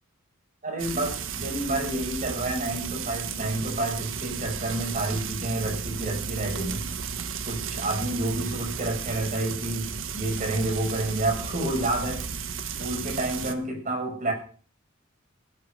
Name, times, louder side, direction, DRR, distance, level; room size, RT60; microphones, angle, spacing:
voice 1, 0.6-6.9 7.5-14.3, right 2 dB, 40° right, 2 dB, 6.7 m, -29 dB
Frying (food), 0.8-13.5, right 6 dB, 65° right, 1.5 m, -34 dB
17.0 x 9.5 x 6.8 m, 0.41 s
head